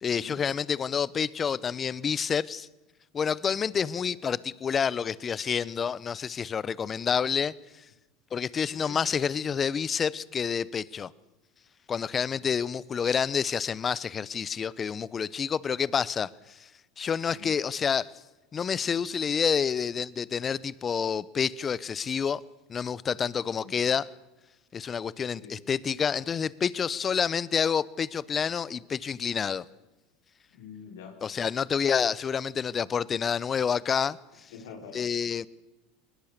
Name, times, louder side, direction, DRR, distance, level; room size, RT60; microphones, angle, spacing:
voice 1, 0.0-2.7 3.1-7.5 8.3-11.1 11.9-16.7 17.0-18.1 18.5-22.4 22.7-24.1 24.7-29.6 31.2-34.2 34.9-35.5, left 7 dB, 30° left, 0.8 m, -28 dB
voice 2, 8.7-9.0 17.3-17.5 23.6-23.7 25.4-25.6 30.5-31.1 34.5-35.5, left 6 dB, 80° left, 4.3 m, -46 dB
21.0 x 19.5 x 6.7 m
hypercardioid pair, 100°, 0 cm